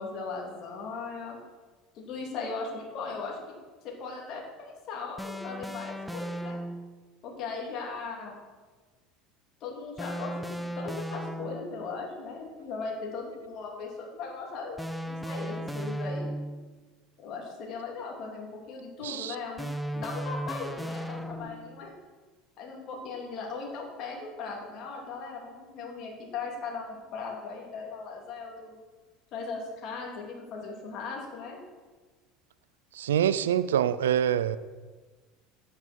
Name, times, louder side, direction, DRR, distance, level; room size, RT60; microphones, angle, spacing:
voice 1, 0.0-1.4 1.9-3.6 3.8-6.6 7.2-8.3 9.6-14.8 15.1-16.3 17.2-21.9 22.6-28.8 29.3-31.6, left 4 dB, 55° left, -1 dB, 3.2 m, -38 dB
sound 1, 5.2-7.0 10.0-11.9 14.8-16.7 19.6-21.8, equal, ahead, 0.7 m, -36 dB
voice 2, 19.0-19.4 32.9-34.6, right 10 dB, 90° right, 16 dB, 0.4 m, -25 dB
9.4 x 9.3 x 4.6 m, 1.3 s
hypercardioid pair, 85°, 0 cm